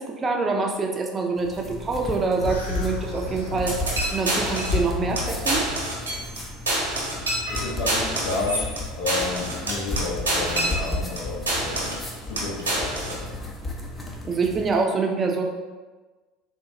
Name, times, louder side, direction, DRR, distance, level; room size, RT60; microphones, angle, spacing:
voice 1, 0.0-3.8 4.1-5.6 14.3-15.4, right 4 dB, 30° right, 2 dB, 0.5 m, -25 dB
sound 1, 1.4-14.8, left 1 dB, 25° left, 0.6 m, -34 dB
sound 2, 2.4-5.8, left 5 dB, 90° left, 0.4 m, -34 dB
sound 3, 3.7-4.9 5.2-5.3 5.5-6.4 6.7-11.2 11.5-12.1 12.4-13.2, right 1 dB, 90° right, 0.8 m, -27 dB
voice 2, 7.5-11.9 12.2-13.2, left 3 dB, 65° left, -4 dB, 0.9 m, -31 dB
3.8 x 2.4 x 2.8 m, 1.3 s
hypercardioid pair, 70°, 0 cm